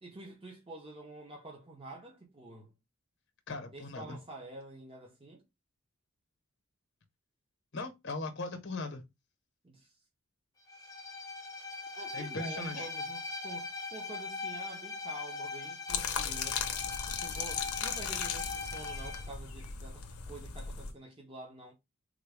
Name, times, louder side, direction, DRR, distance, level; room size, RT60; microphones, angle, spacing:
voice 1, 0.0-2.7 3.7-5.4 9.6-10.0 11.9-16.6 17.1-21.7, right 2 dB, 25° right, 0.7 m, -48 dB
voice 2, 3.5-4.2 7.7-9.0 12.1-12.9, left 3 dB, 55° left, 0.8 m, -39 dB
Bowed string instrument, 10.7-19.3, left 3 dB, 15° left, 0.6 m, -40 dB
sound 1, 15.9-20.9, left 7 dB, 85° left, 0.6 m, -37 dB
3.6 x 2.2 x 3.4 m
head